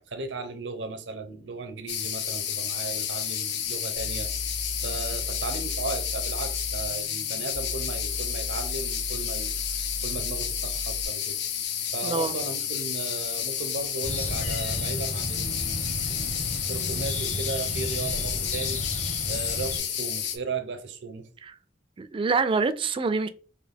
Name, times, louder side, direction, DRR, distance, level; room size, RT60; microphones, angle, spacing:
voice 1, 0.1-4.3 4.8-9.6 10.0-11.4 11.9-16.4 16.7-18.8 19.3-21.3, right 3 dB, 90° right, 0.7 m, -36 dB
sound 1, 1.9-20.4, left 9 dB, 70° left, 0.6 m, -31 dB
sound 2, 3.9-11.0, equal, 85° left, 1.7 m, -37 dB
voice 2, 12.0-12.4 22.0-23.3, right 4 dB, 30° right, 0.3 m, -25 dB
sound 3, 14.0-19.8, left 1 dB, 40° left, 0.9 m, -33 dB
4.1 x 2.7 x 3.4 m
head